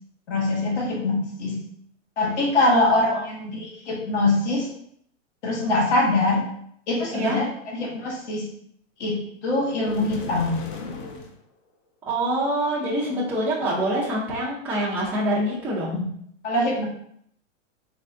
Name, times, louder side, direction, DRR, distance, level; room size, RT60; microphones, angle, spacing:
voice 1, 0.3-1.6 2.2-4.7 5.4-6.4 6.9-7.5 7.7-8.4 9.0-10.6 15.9-16.1 16.4-16.8, left 2 dB, 60° left, -3 dB, 1.5 m, -23 dB
voice 2, 2.7-3.2 7.1-7.4 12.1-16.0, right 1 dB, 5° right, -6 dB, 0.4 m, -25 dB
sound 1, 9.8-11.4, left 4 dB, 40° left, 0.6 m, -36 dB
3.4 x 3.4 x 2.6 m, 0.70 s
hypercardioid pair, 140°, 39 cm